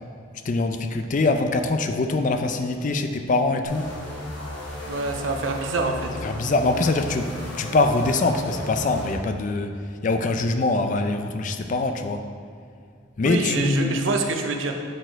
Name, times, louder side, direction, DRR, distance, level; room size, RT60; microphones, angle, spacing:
voice 1, 0.4-3.9 6.2-7.3 7.5-9.8 10.0-12.3 13.2-14.0, left 3 dB, 40° left, 7 dB, 0.4 m, -23 dB
sound 1, 3.6-9.2, left 1 dB, 65° left, 1.3 m, -35 dB
voice 2, 4.9-6.1 13.2-14.7, right 3 dB, 75° right, 4 dB, 0.6 m, -26 dB
6.5 x 4.4 x 4.5 m, 2.3 s
head